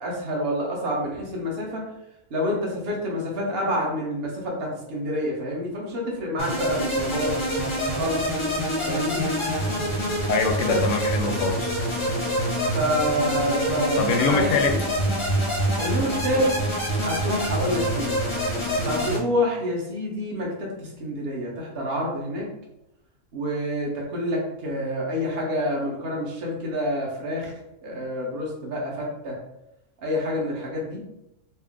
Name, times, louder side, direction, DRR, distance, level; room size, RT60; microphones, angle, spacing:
voice 1, 0.0-1.8 2.3-7.3 7.9-8.4 8.8-9.2 10.6-10.8 12.7-14.8 15.8-16.6 17.0-18.1 18.8-22.5 23.3-29.4 30.0-31.0, equal, 45° right, -2 dB, 1.1 m, -28 dB
sound 1, 6.4-19.2, equal, 30° left, 0.6 m, -26 dB
voice 2, 10.3-11.7 14.0-14.7, left 4 dB, 70° left, 5 dB, 0.9 m, -24 dB
4.2 x 2.1 x 3.6 m, 0.88 s
omnidirectional pair, 1.5 m